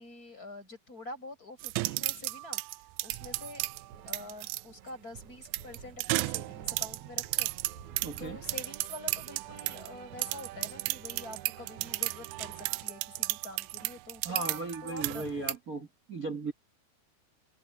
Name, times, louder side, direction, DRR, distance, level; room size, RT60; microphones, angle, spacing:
voice 1, 0.0-2.6 3.0-3.6 4.1-7.5 8.2-15.5, left 2 dB, 20° left, 7.0 m, -46 dB
sound 1, 1.6-4.6 5.4-9.9 10.2-15.5, right 21 dB, 90° right, 2.9 m, -34 dB
sound 2, 3.6-12.8, right 9 dB, 65° right, 1.9 m, -50 dB
voice 2, 8.0-8.4 14.2-16.5, right 3 dB, 45° right, 1.0 m, -37 dB
omnidirectional pair, 5.1 m